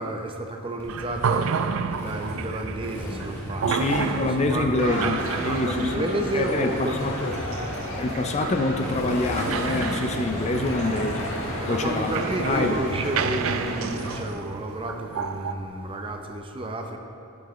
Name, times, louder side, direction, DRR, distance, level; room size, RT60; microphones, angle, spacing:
voice 1, 0.0-1.5 1.9-7.0 11.4-17.0, right 1 dB, 25° right, 3 dB, 0.6 m, -31 dB
Motorcycle, 0.8-13.6, equal, 10° left, 1.4 m, -37 dB
sound 1, 0.9-15.5, right 6 dB, 70° right, 0.4 m, -31 dB
voice 2, 3.7-6.0 6.3-7.3 8.0-11.3 11.7-12.1 12.4-12.8, left 2 dB, 30° left, 5 dB, 0.4 m, -26 dB
sound 2, 4.8-14.2, left 1 dB, 65° left, 1.6 m, -33 dB
13.0 x 7.0 x 3.1 m, 2.6 s
head